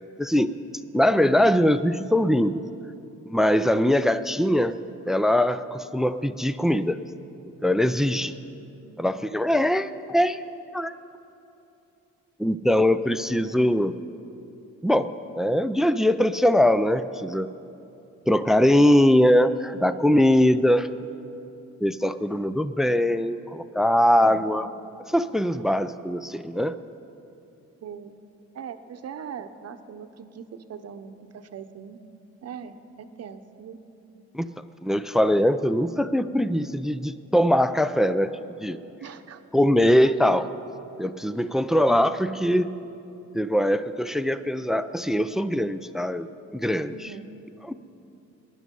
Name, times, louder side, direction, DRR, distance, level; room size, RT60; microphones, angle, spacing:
voice 1, 0.2-0.5 0.9-2.6 3.3-4.7 5.1-7.0 7.6-8.3 9.0-10.4 10.7-10.9 12.4-14.0 14.8-15.1 15.4-17.5 18.3-20.9 21.8-24.7 25.1-26.8 34.3-34.5 34.8-38.8 39.5-40.5 41.0-42.7 43.3-46.3 46.5-46.9 47.6-47.7, left 1 dB, ahead, 13 dB, 0.4 m, -22 dB
voice 2, 8.6-9.0 24.3-24.4 27.8-28.1 28.5-32.0 32.4-33.8 39.0-39.4 40.1-40.2 46.9-47.3, right 7 dB, 55° right, 9 dB, 1.0 m, -40 dB
20.0 x 11.0 x 5.4 m, 2.8 s
cardioid pair, 90°, 30 cm